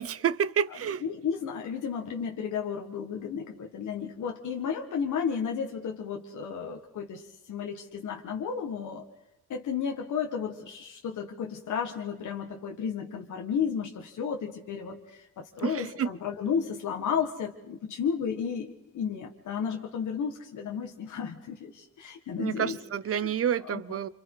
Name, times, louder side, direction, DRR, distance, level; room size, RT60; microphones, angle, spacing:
voice 1, 0.0-1.0 15.6-16.1 22.4-24.1, right 8 dB, 50° right, 0.8 m, -29 dB
voice 2, 1.0-9.0 9.5-22.8 23.1-23.3 23.6-23.8, left 7 dB, 75° left, 1.8 m, -33 dB
28.0 x 27.0 x 4.9 m
cardioid pair, 140°, 31 cm